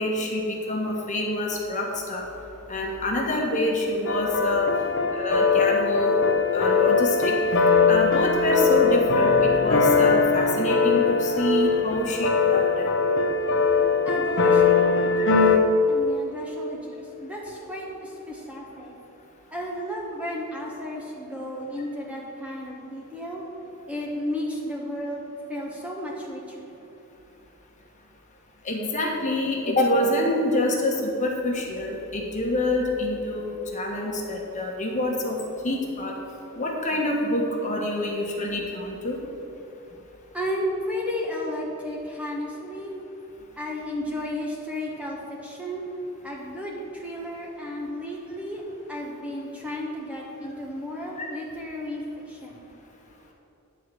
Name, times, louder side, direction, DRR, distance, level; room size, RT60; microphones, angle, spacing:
voice 1, 0.0-2.3 2.7-4.7 5.1-6.2 6.5-7.3 7.9-12.9 28.6-35.4 35.6-36.1 36.5-39.2 51.2-51.3, left 1 dB, 35° left, -1 dB, 1.3 m, -26 dB
sound 1, 4.1-15.6, left 5 dB, 60° left, 0.7 m, -21 dB
voice 2, 14.0-15.5 15.9-19.0 19.5-23.5 23.9-26.7 40.3-43.1 43.6-52.7, equal, 5° right, -3 dB, 1.1 m, -33 dB
9.9 x 4.7 x 7.6 m, 2.9 s
head